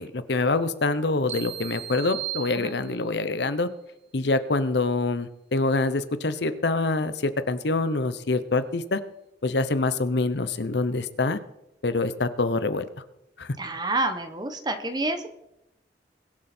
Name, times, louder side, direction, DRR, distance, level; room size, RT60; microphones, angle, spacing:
voice 1, 0.0-3.7 4.1-9.0 9.4-11.4 11.8-12.9 13.4-13.5, left 3 dB, 70° left, 13 dB, 0.9 m, -25 dB
sound 1, 1.3-3.2, right 12 dB, 40° right, 1.4 m, -36 dB
voice 2, 13.6-15.3, right 2 dB, 25° right, 8 dB, 1.1 m, -28 dB
21.5 x 7.4 x 4.4 m, 0.84 s
head